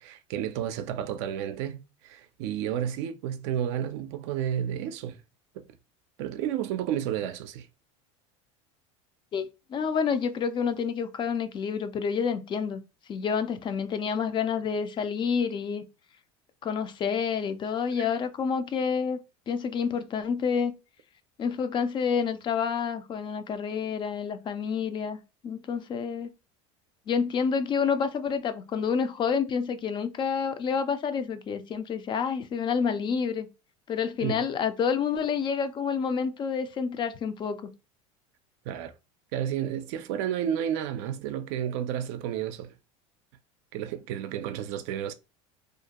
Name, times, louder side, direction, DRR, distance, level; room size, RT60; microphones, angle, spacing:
voice 1, 0.0-5.2 5.6-5.7 6.2-7.7 17.9-18.1 34.2-34.4 38.7-38.9 39.3-42.7 43.7-45.1, right 10 dB, 70° right, 0.4 m, -31 dB
voice 2, 9.3-12.8 13.1-15.8 16.6-19.2 19.5-20.7 21.4-25.2 25.4-26.3 27.1-33.5 33.9-37.6, left 6 dB, 30° left, 0.4 m, -28 dB
2.4 x 2.2 x 2.8 m
supercardioid pair, 110°, 16 cm